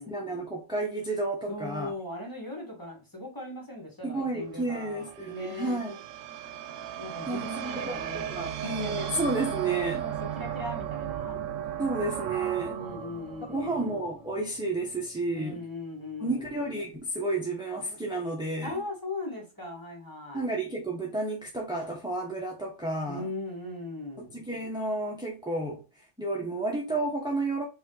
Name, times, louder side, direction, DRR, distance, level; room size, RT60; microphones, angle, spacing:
voice 1, 0.0-1.9 4.0-6.0 7.3-10.0 11.8-12.7 13.5-15.6 16.2-18.7 20.3-23.3 24.3-25.8 26.2-27.7, right 2 dB, 5° right, 0.7 m, -31 dB
voice 2, 1.5-5.8 6.9-9.1 10.0-11.4 12.6-14.0 15.3-16.6 18.6-20.5 23.0-24.3, left 2 dB, 15° left, 1.6 m, -39 dB
sound 1, 4.4-14.7, right 10 dB, 75° right, 1.0 m, -36 dB
5.0 x 2.8 x 3.8 m
omnidirectional pair, 1.4 m